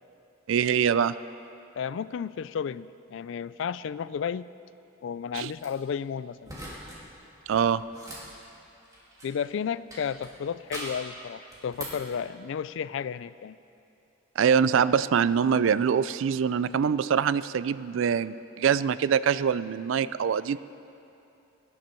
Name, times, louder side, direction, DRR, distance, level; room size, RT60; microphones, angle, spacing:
voice 1, 0.5-1.1 5.3-5.5 7.5-7.8 14.4-20.6, right 7 dB, 70° right, 16 dB, 0.3 m, -24 dB
voice 2, 1.7-4.5 5.0-6.5 9.2-13.6, left 7 dB, 65° left, 17 dB, 0.3 m, -33 dB
sound 1, 5.3-5.7 6.4-7.0 7.3-9.5 9.9-11.1 11.5-12.1, right 1 dB, 20° right, 2.5 m, -42 dB
18.5 x 10.5 x 4.5 m, 2.8 s
head